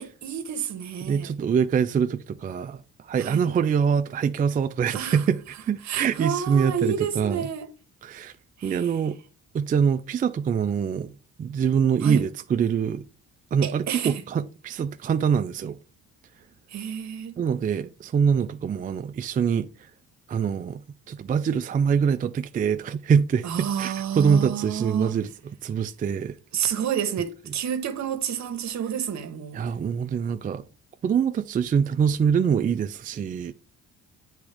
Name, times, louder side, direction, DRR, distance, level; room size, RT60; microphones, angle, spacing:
voice 1, 0.0-1.3 3.2-3.4 4.9-5.2 5.8-7.7 8.6-8.9 12.0-12.3 13.6-14.2 16.7-17.3 23.4-25.2 26.5-29.6, right 8 dB, 65° right, 1.0 m, -29 dB
voice 2, 1.0-7.5 8.0-8.3 8.6-9.2 9.5-11.1 11.4-13.0 13.5-15.8 17.4-19.7 20.3-26.4 29.5-30.7 31.0-33.5, right 7 dB, 30° right, 0.3 m, -24 dB
8.1 x 3.5 x 3.3 m
cardioid pair, 90°, 30 cm